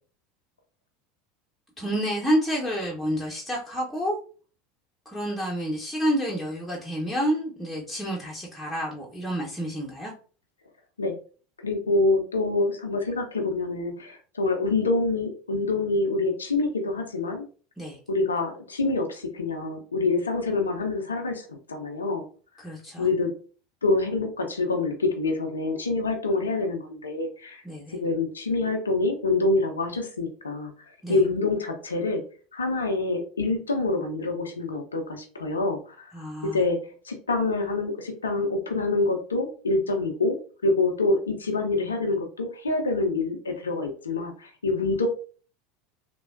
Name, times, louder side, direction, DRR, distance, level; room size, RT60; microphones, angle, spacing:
voice 1, 1.8-4.2 5.1-10.1 17.8-18.0 22.6-23.1 27.6-28.0 31.0-31.2 36.1-36.6, equal, 5° left, -4 dB, 0.7 m, -29 dB
voice 2, 11.6-17.5 18.1-22.2 23.0-23.3 23.8-27.6 27.9-30.7 31.1-32.2 32.5-36.1 36.4-40.4 40.6-45.1, left 3 dB, 80° left, 3 dB, 0.4 m, -26 dB
3.2 x 2.0 x 2.4 m, 0.40 s
figure-of-eight pair, 75°, 0 cm